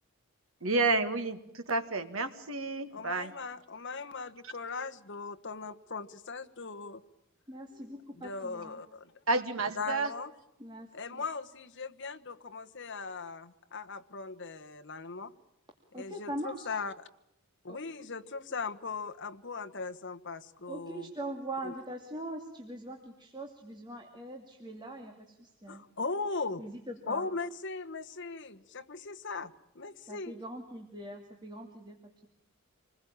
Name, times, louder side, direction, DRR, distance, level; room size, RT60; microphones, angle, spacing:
voice 1, 0.6-3.3 9.3-10.1, right 3 dB, 65° right, 9 dB, 2.1 m, -30 dB
voice 2, 2.9-7.0 8.1-9.1 9.7-10.3 10.9-15.3 15.9-17.1 17.6-21.1 21.6-21.7 25.7-26.6 27.1-30.3, left 4 dB, 55° left, 7 dB, 1.3 m, -39 dB
voice 3, 7.5-8.8 10.6-11.2 15.9-16.7 17.7-17.8 20.7-25.8 26.6-27.3 30.1-32.3, right 1 dB, 20° right, 2 dB, 2.4 m, -42 dB
27.0 x 20.5 x 8.9 m, 0.80 s
head